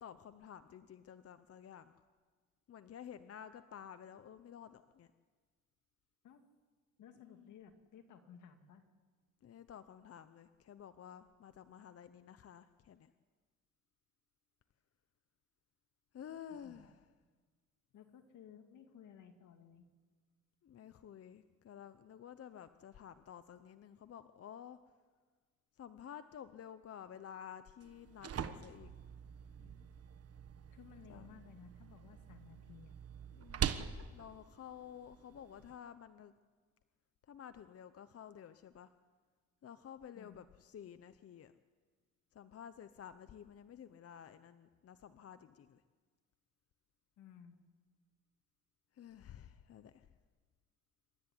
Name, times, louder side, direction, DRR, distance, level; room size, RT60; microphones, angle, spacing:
voice 1, 0.0-1.9 2.7-5.1 7.2-7.6 9.4-13.1 16.1-17.1 20.6-24.8 25.7-28.9 29.6-29.9 31.1-31.3 33.3-36.3 37.2-38.9 39.6-41.5 42.3-45.8 48.9-50.1, left 9 dB, 50° left, 11 dB, 0.9 m, -52 dB
voice 2, 7.0-8.8 16.6-16.8 17.9-19.9 30.7-33.0 40.1-40.5 47.2-47.6, left 8 dB, 75° left, 6 dB, 2.5 m, -57 dB
sound 1, 27.8-35.8, right 8 dB, 50° right, 1.4 m, -44 dB
27.5 x 13.0 x 9.9 m, 1.5 s
cardioid pair, 90°, 30 cm